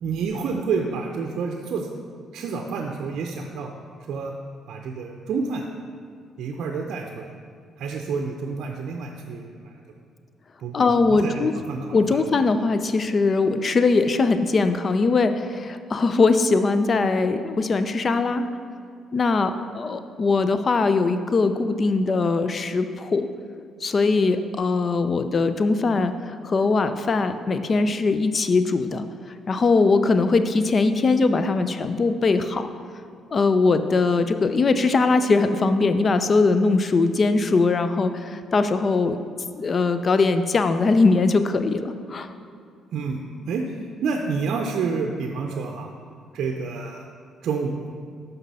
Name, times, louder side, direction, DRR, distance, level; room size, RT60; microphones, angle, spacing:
voice 1, 0.0-1.9 2.3-3.7 4.1-4.3 4.7-5.6 6.4-7.2 7.8-9.7 10.6-12.2 42.9-43.2 43.5-43.6 44.0-45.9 46.3-47.0 47.4-47.9, right 5 dB, 70° right, 2 dB, 0.5 m, -29 dB
voice 2, 10.7-11.5 11.9-18.5 19.1-23.3 23.8-29.0 29.5-32.7 33.3-39.2 39.5-42.3, left 3 dB, 40° left, 10 dB, 0.5 m, -21 dB
6.0 x 5.4 x 5.4 m, 2.3 s
cardioid pair, 85°, 0 cm